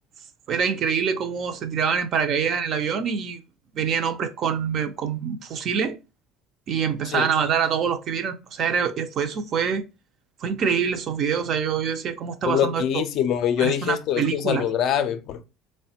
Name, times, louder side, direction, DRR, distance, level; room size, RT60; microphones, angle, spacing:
voice 1, 0.5-3.4 3.7-6.0 6.7-9.8 10.4-13.0 13.6-14.7, right 7 dB, 45° right, 0.4 m, -25 dB
voice 2, 12.5-15.4, left 9 dB, 50° left, 0.4 m, -24 dB
3.2 x 2.1 x 2.7 m
cardioid pair, 140°, 0 cm